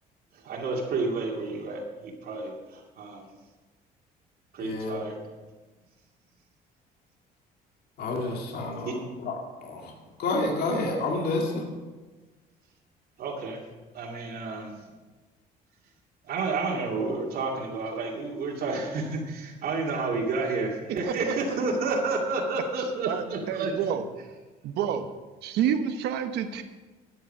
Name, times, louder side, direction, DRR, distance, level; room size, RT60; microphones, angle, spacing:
voice 1, 0.4-3.3 4.5-5.2 8.8-9.0 13.2-13.6 13.9-14.7 16.3-23.7, right 3 dB, 65° right, -1 dB, 2.3 m, -30 dB
voice 2, 4.6-5.0 8.0-9.3 9.6-9.9 10.2-11.6, left 2 dB, 65° left, 1 dB, 2.4 m, -29 dB
voice 3, 23.1-24.1 24.6-25.1 25.4-26.6, right 8 dB, 80° right, 8 dB, 1.1 m, -28 dB
12.5 x 9.4 x 5.5 m, 1.3 s
cardioid pair, 110°, 17 cm